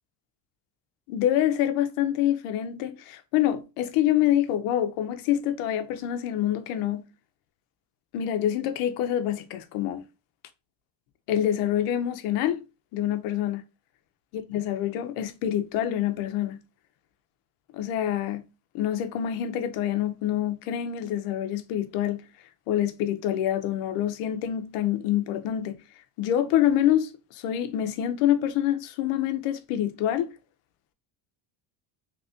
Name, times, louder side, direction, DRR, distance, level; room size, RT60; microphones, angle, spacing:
voice 1, 1.1-7.0 8.1-10.1 11.3-12.6 12.9-13.6 14.3-16.6 17.7-18.5 18.7-22.2 22.7-25.8 26.2-30.3, left 11 dB, 90° left, 0.6 m, -26 dB
2.9 x 2.6 x 3.4 m
cardioid pair, 90°, 50 cm